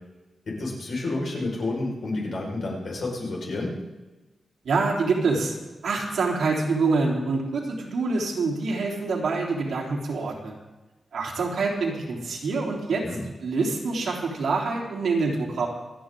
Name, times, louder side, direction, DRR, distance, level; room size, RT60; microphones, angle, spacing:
voice 1, 0.4-3.7 13.0-13.2, left 2 dB, 55° left, -3 dB, 5.0 m, -30 dB
voice 2, 4.7-5.5 5.8-10.6 11.1-13.1 13.4-15.7, right 3 dB, 80° right, -2 dB, 3.6 m, -26 dB
27.0 x 9.8 x 3.8 m, 1.2 s
wide cardioid pair, 170°, 0 cm